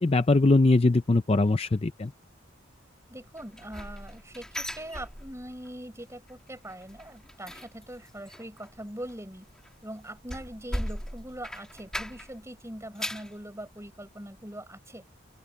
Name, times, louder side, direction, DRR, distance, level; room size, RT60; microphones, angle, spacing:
voice 1, 0.0-2.1, left 2 dB, 30° left, 0.5 m, -21 dB
voice 2, 3.1-9.5 9.8-15.0, right 1 dB, 15° right, 7.3 m, -42 dB
sound 1, 3.4-5.7 6.0-6.3 6.6-12.4 12.8-13.4 13.9-14.0 14.4-14.5, equal, 5° left, 2.2 m, -38 dB
open air
head